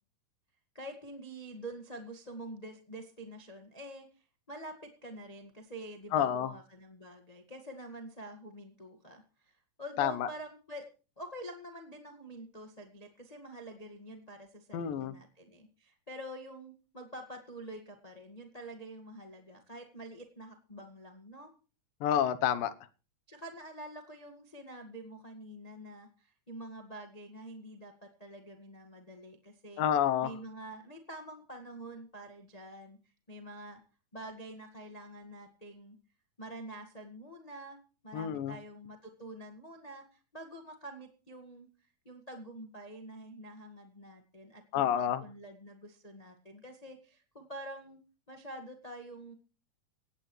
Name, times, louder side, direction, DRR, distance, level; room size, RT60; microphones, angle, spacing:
voice 1, 0.7-10.9 11.2-21.5 23.3-29.8 30.2-33.0 33.3-33.8 34.1-36.0 36.4-37.8 38.0-41.7 42.0-48.0 48.3-49.3, right 1 dB, 20° left, 4 dB, 1.0 m, -47 dB
voice 2, 6.1-6.5 10.0-10.3 14.7-15.1 22.0-22.7 29.8-30.3 38.1-38.6 44.7-45.2, left 10 dB, 80° left, 13 dB, 2.7 m, -29 dB
17.0 x 16.5 x 3.2 m, 0.37 s
omnidirectional pair, 4.0 m